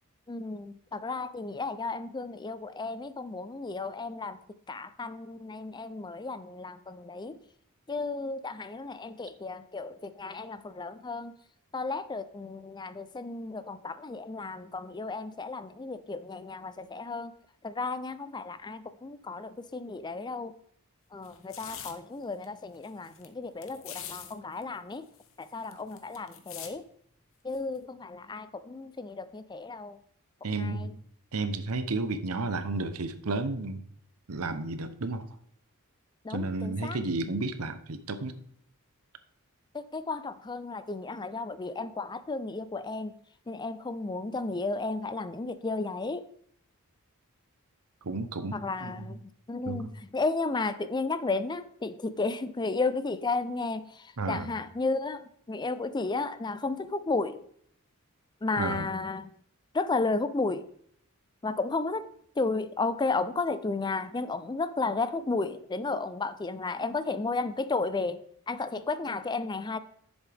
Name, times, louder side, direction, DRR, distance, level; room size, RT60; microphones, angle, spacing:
voice 1, 0.3-4.4 4.7-7.4 7.9-11.3 11.7-17.3 17.6-20.5 21.1-25.1 25.4-26.9 27.4-30.0 30.6-31.0 36.2-37.0 39.7-43.1 43.5-46.3 48.5-57.4 58.4-59.3 59.7-60.6 61.4-62.1 62.4-69.8, left 3 dB, 20° left, 13 dB, 0.4 m, -33 dB
sound 1, 21.2-21.9 22.4-22.5 22.7-23.3 23.6-24.3 24.6-24.7 24.9-26.7 27.5-27.8, left 9 dB, 65° left, 1.1 m, -43 dB
voice 2, 30.4-30.9 31.3-33.8 34.3-35.2 36.3-38.3 48.0-49.1 49.7-49.9 54.2-54.5 58.6-58.9, right 3 dB, 85° right, 11 dB, 0.9 m, -32 dB
11.0 x 7.1 x 3.5 m, 0.66 s
head